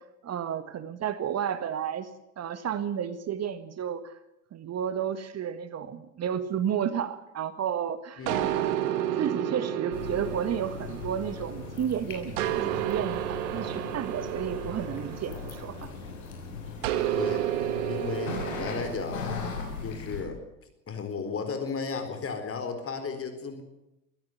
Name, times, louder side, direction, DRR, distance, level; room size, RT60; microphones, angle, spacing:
voice 1, 0.2-2.1 2.4-4.2 4.5-15.9 18.3-18.4, right 9 dB, 35° right, 12 dB, 1.7 m, -32 dB
voice 2, 8.2-8.5 17.2-17.5 17.9-19.3 19.8-20.4 20.9-23.6, left 5 dB, 30° left, 7 dB, 4.2 m, -34 dB
sound 1, 8.3-11.8 12.4-16.1 16.8-19.5, right 12 dB, 60° right, 2.0 m, -31 dB
sound 2, 9.9-20.2, left 5 dB, 70° left, 6.1 m, -38 dB
24.5 x 16.5 x 7.8 m, 0.87 s
figure-of-eight pair, 65°, 43 cm